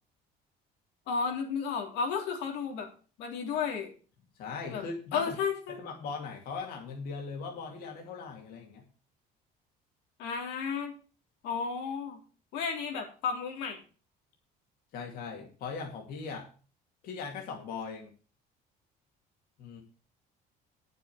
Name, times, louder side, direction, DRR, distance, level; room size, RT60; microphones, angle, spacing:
voice 1, 1.1-2.9 3.2-3.9 4.7-4.8 5.1-5.8 10.2-10.9 11.4-12.2 12.5-13.8, left 6 dB, 85° left, 2 dB, 3.2 m, -33 dB
voice 2, 4.4-5.4 5.7-8.8 14.9-16.5 17.0-18.1 19.6-19.8, left 5 dB, 60° left, 1 dB, 2.6 m, -39 dB
10.0 x 6.9 x 7.1 m, 0.37 s
cardioid pair, 170°, 17 cm